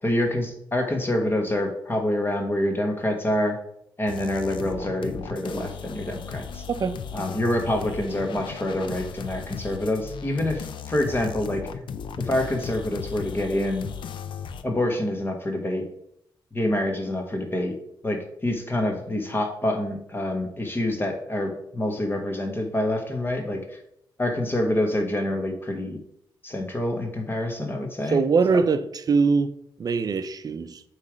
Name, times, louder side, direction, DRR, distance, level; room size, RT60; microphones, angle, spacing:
voice 1, 0.0-3.6 4.0-6.6 7.1-11.6 12.2-13.9 14.6-15.8 16.5-17.7 18.0-23.8 24.2-26.0 26.4-28.2 28.5-28.6, left 1 dB, 25° left, 1.4 m, -26 dB
sound 1, 4.1-14.6, left 7 dB, 70° left, 0.5 m, -36 dB
voice 2, 6.7-7.0 28.1-29.5 29.8-30.8, right 5 dB, 45° right, 0.6 m, -22 dB
8.2 x 3.3 x 5.1 m
cardioid pair, 85°, 9 cm